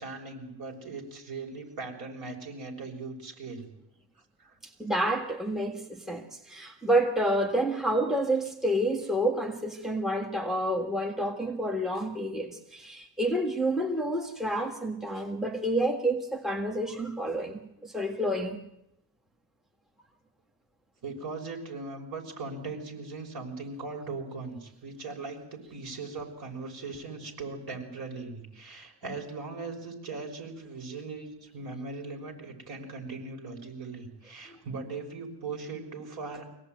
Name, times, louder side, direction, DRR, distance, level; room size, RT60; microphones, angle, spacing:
voice 1, 0.0-3.7 4.4-4.6 21.0-36.5, right 3 dB, 60° right, 1 dB, 6.0 m, -39 dB
voice 2, 4.8-18.6, right 1 dB, ahead, 3 dB, 1.7 m, -29 dB
25.0 x 17.5 x 9.2 m, 0.87 s
wide cardioid pair, 170°, 41 cm